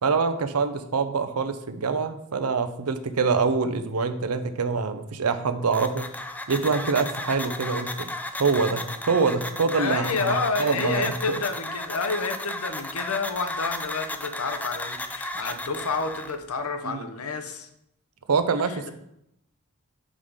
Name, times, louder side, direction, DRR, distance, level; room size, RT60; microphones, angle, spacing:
voice 1, 0.0-6.1 6.5-8.1 8.4-11.4 16.8-17.0 18.3-18.9, right 4 dB, 85° right, 10 dB, 0.6 m, -25 dB
sound 1, 5.7-16.3, left 1 dB, 5° left, 0.4 m, -34 dB
voice 2, 9.7-17.7 18.6-18.9, left 4 dB, 75° left, 8 dB, 0.8 m, -29 dB
5.6 x 5.0 x 5.0 m, 0.81 s
head